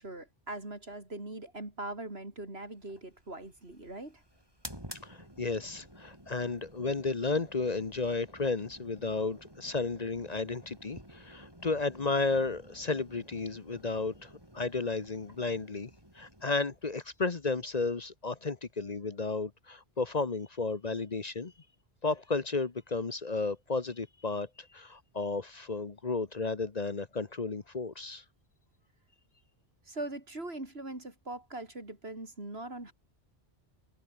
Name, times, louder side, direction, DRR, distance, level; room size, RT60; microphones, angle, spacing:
voice 1, 0.0-4.2 29.9-32.9, right 2 dB, 75° right, 5.2 m, -41 dB
sound 1, 2.8-18.1, equal, 25° right, 7.2 m, -52 dB
voice 2, 5.0-21.5 22.0-28.2, left 3 dB, 40° left, 1.2 m, -33 dB
omnidirectional pair, 1.0 m